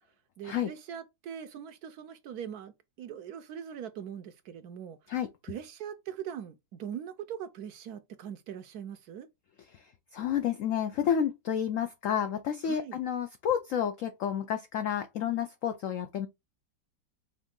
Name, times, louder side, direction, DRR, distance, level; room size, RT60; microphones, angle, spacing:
voice 1, 0.4-2.7 3.0-5.0 5.4-9.3 12.6-13.0, right 9 dB, 70° right, 1.0 m, -41 dB
voice 2, 10.1-16.3, left 9 dB, 85° left, 0.7 m, -30 dB
5.3 x 2.6 x 3.6 m
omnidirectional pair, 1.9 m